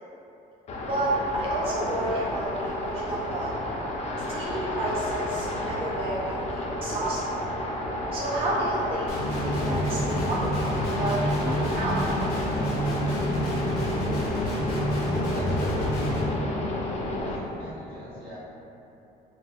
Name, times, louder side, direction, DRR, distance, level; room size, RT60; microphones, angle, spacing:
sound 1, 0.7-17.4, left 1 dB, 40° left, 0.5 m, -31 dB
voice 1, 0.9-3.5 4.3-7.2 8.1-9.1 9.4-11.2 11.4-12.0, right 1 dB, 35° right, -6 dB, 0.5 m, -30 dB
Guitar, 9.1-16.2, equal, 90° left, 0.9 m, -28 dB
voice 2, 15.3-16.4 17.2-18.4, right 1 dB, 75° right, -10 dB, 1.4 m, -41 dB
4.6 x 2.3 x 2.2 m, 2.9 s
cardioid pair, 110°, 17 cm